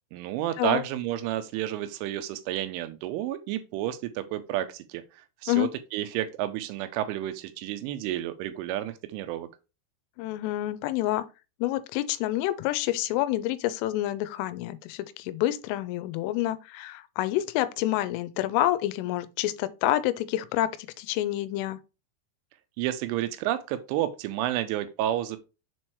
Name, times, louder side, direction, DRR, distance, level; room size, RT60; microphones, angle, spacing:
voice 1, 0.1-5.0 5.4-9.5 22.8-25.4, right 12 dB, 85° right, 3.0 m, -30 dB
voice 2, 10.2-11.2 11.6-21.8, left 14 dB, 85° left, 3.1 m, -28 dB
7.0 x 4.4 x 3.1 m
omnidirectional pair, 5.6 m